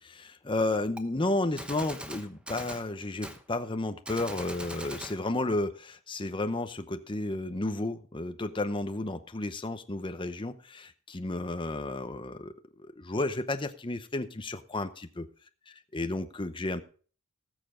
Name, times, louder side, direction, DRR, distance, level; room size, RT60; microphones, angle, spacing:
voice 1, 0.0-15.3 15.9-16.8, left 2 dB, 25° left, 9 dB, 0.8 m, -32 dB
Gunshot gunfire, 1.0-1.1 1.6-2.9 3.2-3.4 4.0-5.2, right 1 dB, 5° right, 0.9 m, -41 dB
19.5 x 6.8 x 3.8 m, 0.40 s
head